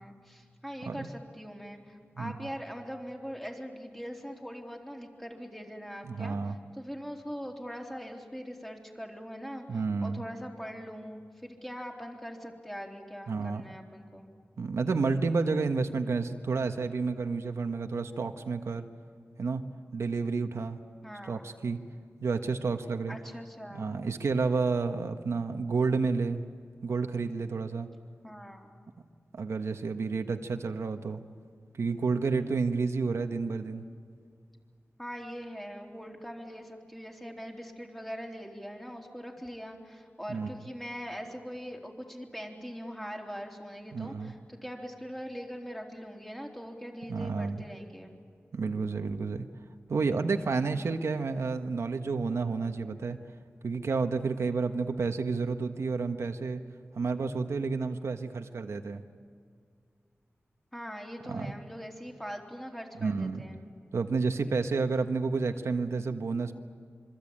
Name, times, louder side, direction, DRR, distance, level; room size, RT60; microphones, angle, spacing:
voice 1, 0.0-6.4 6.8-14.3 21.0-21.5 23.1-23.9 28.2-28.7 35.0-48.1 60.7-63.6, equal, 5° left, 1 dB, 3.6 m, -42 dB
voice 2, 6.1-6.6 9.7-10.2 13.3-13.6 14.6-18.9 19.4-19.6 19.9-20.8 21.2-21.8 22.2-23.2 23.7-26.4 26.8-27.9 29.3-31.2 31.7-33.8 40.3-40.5 43.9-44.3 47.1-47.6 48.5-49.5 49.9-53.2 53.6-56.6 56.9-59.0 61.3-61.5 63.0-63.4 63.9-66.5, right 4 dB, 90° right, 6 dB, 1.4 m, -30 dB
26.5 x 24.5 x 8.8 m, 2.1 s
wide cardioid pair, 105°, 5 cm